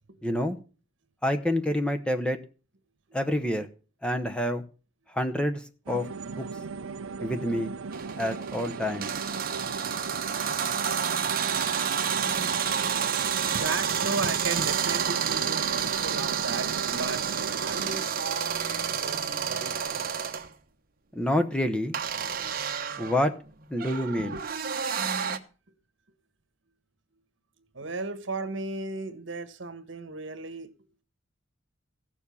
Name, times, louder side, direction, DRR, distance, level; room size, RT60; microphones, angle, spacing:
voice 1, 0.2-0.6 1.2-2.4 3.1-3.7 4.0-4.6 5.1-6.1 6.4-6.5 7.2-7.7 8.2-9.1 21.1-21.9 23.0-23.3 23.7-24.4, left 1 dB, 5° left, 0.8 m, -27 dB
sound 1, 5.9-18.0, right 4 dB, 80° right, 0.6 m, -37 dB
sound 2, 7.9-20.5 21.9-25.4, right 7 dB, 45° right, 1.1 m, -30 dB
voice 2, 13.2-20.1 24.2-24.4 27.7-30.7, right 3 dB, 65° right, 1.4 m, -36 dB
15.0 x 7.2 x 6.9 m
head